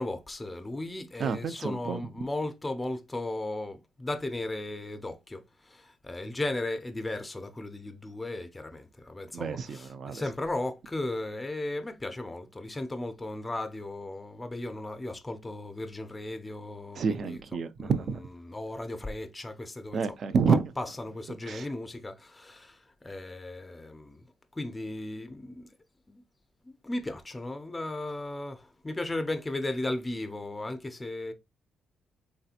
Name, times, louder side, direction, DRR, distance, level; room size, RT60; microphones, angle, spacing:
voice 1, 0.0-5.4 5.7-17.4 17.8-17.9 18.4-20.0 20.5-22.8 23.0-24.2 24.6-25.6 26.1-26.2 26.7-31.3, left 2 dB, 15° left, 0.4 m, -36 dB
voice 2, 1.2-2.0 9.3-10.2 16.9-18.2 19.9-20.7 21.5-21.7, right 5 dB, 55° right, 0.4 m, -28 dB
3.2 x 2.8 x 2.4 m
cardioid pair, 90°, 0 cm